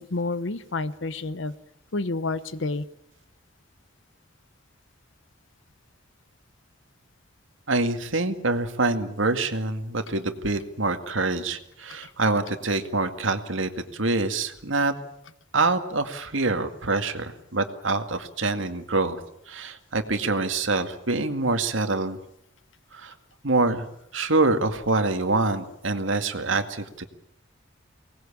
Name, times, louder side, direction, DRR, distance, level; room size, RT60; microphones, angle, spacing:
voice 1, 0.0-1.5 1.9-2.8, left 3 dB, 70° left, 14 dB, 1.0 m, -29 dB
voice 2, 7.7-14.9 15.5-19.2 19.5-22.2 22.9-23.2 23.4-23.9 24.1-27.0, right 3 dB, 80° right, 7 dB, 2.1 m, -25 dB
23.5 x 19.0 x 8.7 m, 0.79 s
head